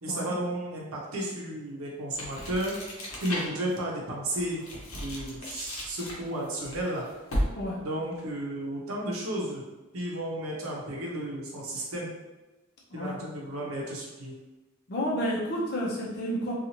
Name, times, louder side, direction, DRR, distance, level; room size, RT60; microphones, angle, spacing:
voice 1, 0.0-2.8 3.2-4.6 5.0-7.0 7.8-9.6 9.9-12.1 12.9-14.3, right 1 dB, 75° right, -3 dB, 0.7 m, -33 dB
sound 1, 2.1-3.7 4.2-7.8, equal, 85° left, 0.8 m, -35 dB
voice 2, 7.5-7.9 12.9-13.2 14.9-16.5, equal, 50° left, -4 dB, 0.6 m, -31 dB
2.8 x 2.4 x 2.8 m, 1.1 s
head